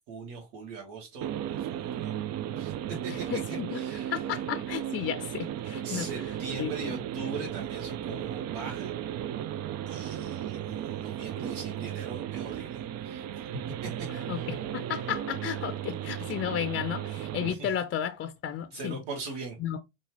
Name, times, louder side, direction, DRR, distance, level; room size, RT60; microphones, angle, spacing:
voice 1, 0.1-2.2 2.6-3.4 3.7-4.2 5.8-8.9 9.9-13.2 13.5-14.5 17.4-17.7 18.7-19.6, right 4 dB, 70° right, 1.5 m, -40 dB
sound 1, 1.2-17.5, right 11 dB, 45° right, 0.5 m, -35 dB
voice 2, 3.1-3.8 4.1-6.1 6.6-6.7 14.3-19.0 19.6-19.8, left 9 dB, 35° left, 0.5 m, -33 dB
5.2 x 2.4 x 3.0 m
hypercardioid pair, 80°, 37 cm